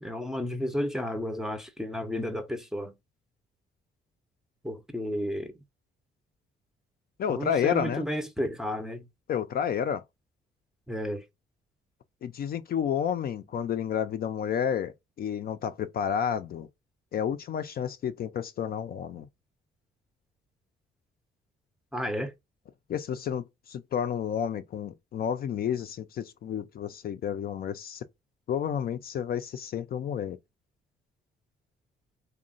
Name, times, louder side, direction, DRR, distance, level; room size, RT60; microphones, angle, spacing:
voice 1, 0.0-2.9 4.6-5.5 7.3-9.0 10.9-11.2 21.9-22.3, left 1 dB, ahead, 0.5 m, -32 dB
voice 2, 7.2-8.1 9.3-10.0 12.2-16.7 17.1-19.3 22.9-28.0 28.5-30.4, left 8 dB, 50° left, 0.4 m, -30 dB
2.9 x 2.1 x 2.4 m
cardioid pair, 90°, 20 cm